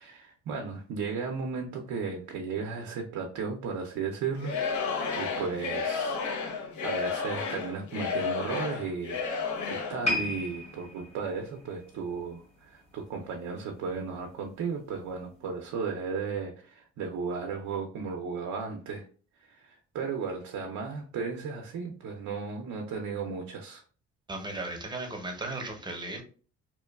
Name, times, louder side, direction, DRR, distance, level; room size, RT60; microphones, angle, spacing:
voice 1, 0.0-19.1 19.4-23.8, right 5 dB, 70° right, 2 dB, 0.5 m, -35 dB
Singing / Crowd, 4.4-10.1, left 5 dB, 70° left, 0.7 m, -32 dB
sound 1, 10.0-13.3 13.6-13.9 14.6-14.7, left 2 dB, 20° left, 0.9 m, -35 dB
voice 2, 24.3-26.2, right 2 dB, 15° right, 3 dB, 0.6 m, -36 dB
2.9 x 2.2 x 2.2 m, 0.40 s
cardioid pair, 90°, 30 cm